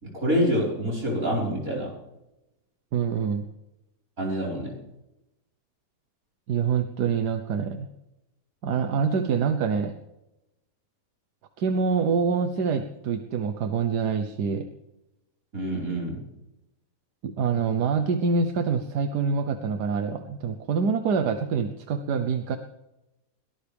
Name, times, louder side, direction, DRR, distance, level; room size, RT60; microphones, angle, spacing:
voice 1, 0.0-1.9 4.2-4.8 15.5-16.2, equal, 55° right, -4 dB, 5.8 m, -26 dB
voice 2, 2.9-3.5 6.5-7.9 8.6-9.9 11.6-14.7 17.2-22.6, right 5 dB, 80° right, 7 dB, 1.6 m, -25 dB
22.5 x 18.0 x 3.5 m, 0.94 s
omnidirectional pair, 1.7 m